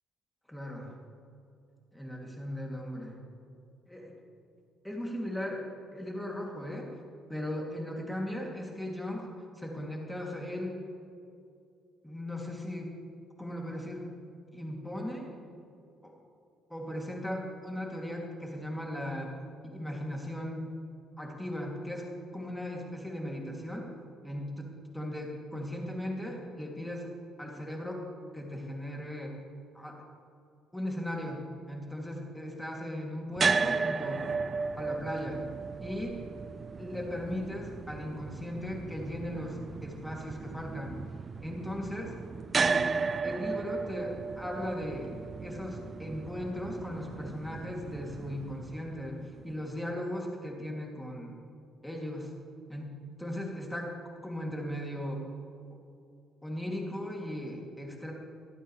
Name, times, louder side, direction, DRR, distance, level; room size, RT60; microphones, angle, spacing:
voice 1, 0.5-1.0 1.9-3.2 3.9-4.1 4.8-5.7 5.9-6.9 7.3-9.3 9.6-10.8 12.0-12.9 13.4-14.0 14.5-15.3 16.0-16.1 16.7-19.3 19.6-20.7 21.2-22.1 22.3-23.9 24.2-27.1 27.4-28.0 28.3-29.3 29.7-30.0 30.7-34.2 34.8-35.4 35.8-36.2 36.8-41.0 41.4-42.1 42.6-42.8 43.2-45.1 45.4-51.4 51.8-52.3 52.7-53.9 54.2-55.2 56.4-58.1, left 1 dB, 5° left, -1 dB, 2.7 m, -37 dB
sound 1, 33.4-49.5, right 4 dB, 30° right, 0.4 m, -35 dB
25.0 x 9.0 x 3.3 m, 2.5 s
cardioid pair, 105°, 0 cm